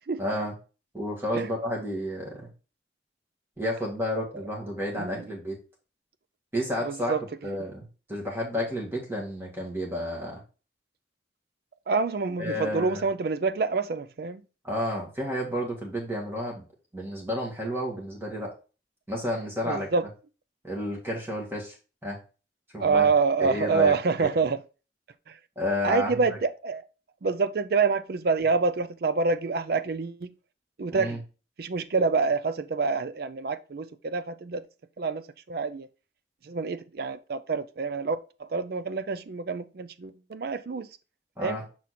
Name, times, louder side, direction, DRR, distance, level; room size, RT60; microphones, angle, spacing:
voice 1, 0.2-0.5 0.9-2.5 3.6-5.6 6.5-7.1 7.4-10.4 12.4-13.0 14.6-16.6 16.9-18.5 19.1-19.9 20.6-21.7 22.0-22.2 22.7-23.0 23.4-24.3 25.6-26.4 30.9-31.2 41.4-41.6, equal, 15° right, 1.9 m, -31 dB
voice 2, 4.9-5.3 6.8-7.2 11.9-14.4 19.6-20.0 22.8-24.6 25.3-25.4 25.8-26.8 27.2-30.3 30.8-31.2 31.6-34.6 35.0-35.9 36.4-40.9 41.4-41.6, right 4 dB, 55° right, 0.4 m, -27 dB
6.2 x 4.2 x 4.1 m
head